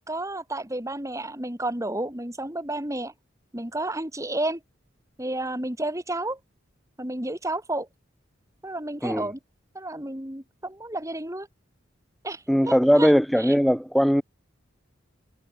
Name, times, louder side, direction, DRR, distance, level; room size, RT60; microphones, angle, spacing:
voice 1, 0.0-3.1 3.5-4.6 5.2-6.4 7.0-7.9 8.6-9.4 9.7-11.5 12.2-13.1 13.5-13.6, right 1 dB, 15° right, 3.3 m, -31 dB
voice 2, 12.5-14.2, equal, ahead, 1.9 m, -19 dB
head